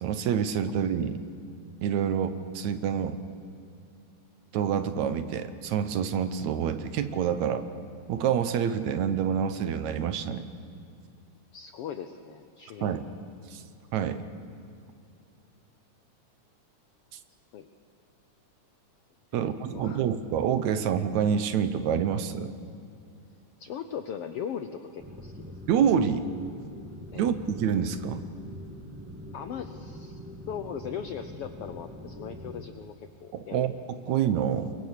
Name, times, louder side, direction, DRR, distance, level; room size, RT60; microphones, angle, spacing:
voice 1, 0.0-1.2 1.8-3.2 4.5-7.7 8.1-10.4 12.8-13.0 13.5-13.6 13.9-14.2 19.3-22.5 25.7-26.2 27.2-28.2 33.3-34.7, right 8 dB, 70° right, 10 dB, 2.2 m, -27 dB
voice 2, 11.5-13.0 17.5-17.7 19.3-20.0 23.6-25.4 27.1-27.3 29.3-30.2 30.5-33.7 34.1-34.2, left 8 dB, 75° left, 8 dB, 1.4 m, -39 dB
sound 1, 25.0-32.7, equal, 10° right, 0.8 m, -43 dB
27.0 x 22.5 x 6.6 m, 2.5 s
omnidirectional pair, 3.6 m